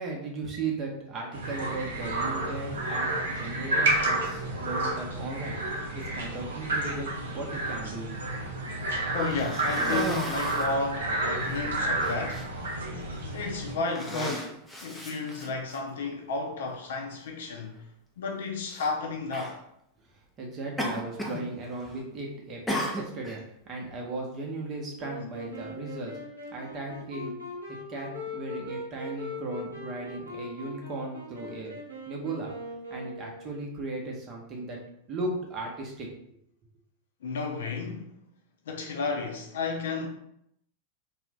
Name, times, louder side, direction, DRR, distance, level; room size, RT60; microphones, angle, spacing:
voice 1, 0.0-8.1 20.4-26.2 26.5-27.3 27.9-31.8 32.1-32.5 32.9-34.8 35.1-36.1, right 3 dB, 30° right, 0.7 m, -36 dB
sound 1, 1.3-13.8, right 2 dB, 65° right, 0.6 m, -30 dB
voice 2, 9.1-12.5 13.3-14.5 14.8-17.8 18.2-19.6 37.2-38.1 38.7-40.1, left 4 dB, 60° left, 0.4 m, -32 dB
Cough, 9.1-10.8 11.5-11.6 12.0-12.5 13.2-13.5 13.8-15.8 16.7-16.8 18.7-18.9 19.3-19.6 20.8-21.5 21.7-22.1 22.7-23.4, equal, 5° left, 0.5 m, -35 dB
Wind instrument woodwind instrument, 25.0-33.7, left 2 dB, 90° left, 0.8 m, -40 dB
2.4 x 2.1 x 3.5 m
figure-of-eight pair, 90°, 0 cm